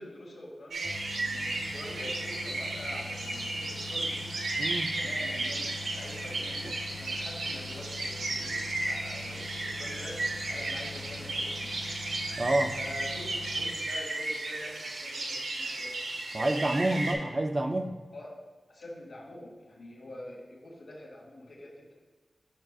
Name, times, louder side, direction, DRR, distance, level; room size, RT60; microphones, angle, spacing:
voice 1, 0.0-4.3 4.9-10.2 10.5-11.9 12.7-17.4 18.1-18.4 18.7-21.9, left 1 dB, 75° left, -9 dB, 1.6 m, -46 dB
sound 1, 0.7-17.1, right 2 dB, 90° right, 0.9 m, -34 dB
sound 2, 0.8-13.7, left 3 dB, 20° left, 0.6 m, -44 dB
voice 2, 4.6-4.9 12.4-12.8 16.3-18.0, right 1 dB, 30° right, 6 dB, 0.5 m, -28 dB
8.7 x 6.0 x 2.4 m, 1.4 s
wide cardioid pair, 105°, 0 cm